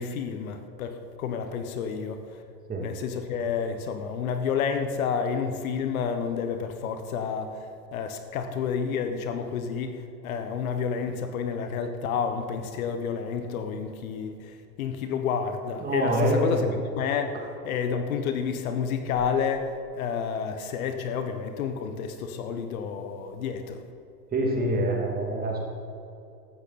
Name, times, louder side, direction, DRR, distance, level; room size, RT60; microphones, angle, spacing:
voice 1, 0.0-2.2 2.8-7.6 7.9-16.7 17.0-17.4 17.6-23.8, left 6 dB, 55° left, 7 dB, 1.3 m, -30 dB
voice 2, 15.8-16.8 24.3-25.6, right 1 dB, 20° right, 0 dB, 2.5 m, -25 dB
15.0 x 12.5 x 4.3 m, 2.6 s
hypercardioid pair, 120°, 50 cm